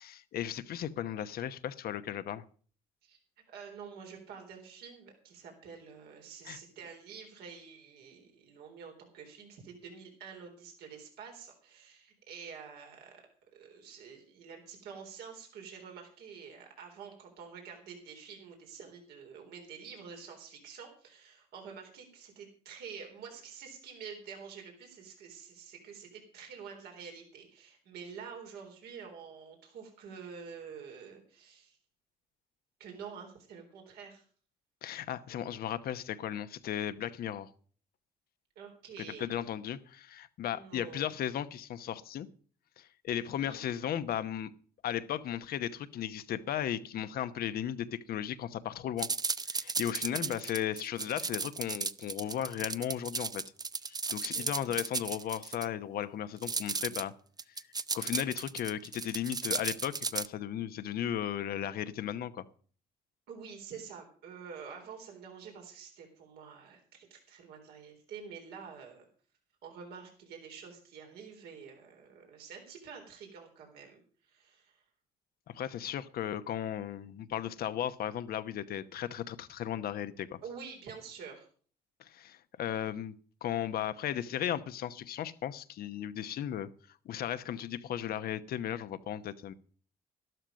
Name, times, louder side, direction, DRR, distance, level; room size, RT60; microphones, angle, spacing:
voice 1, 0.0-2.4 6.5-6.6 34.8-37.5 39.2-42.3 42.8-44.5 44.8-49.1 49.4-53.4 53.9-57.1 57.5-57.6 57.9-62.4 75.5-80.4 82.0-83.1 83.4-86.7 87.0-89.5, left 10 dB, 70° left, 1.0 m, -36 dB
voice 2, 3.5-13.2 13.5-31.8 32.8-34.2 38.6-39.3 40.5-41.0 43.2-43.7 50.0-50.4 54.3-54.8 63.3-69.1 69.6-74.8 80.4-81.5, right 6 dB, 80° right, 3.9 m, -48 dB
sound 1, 49.0-55.7 56.4-57.0 57.4-60.3, right 4 dB, 25° right, 0.6 m, -35 dB
12.5 x 12.5 x 5.2 m
supercardioid pair, 65°, 16 cm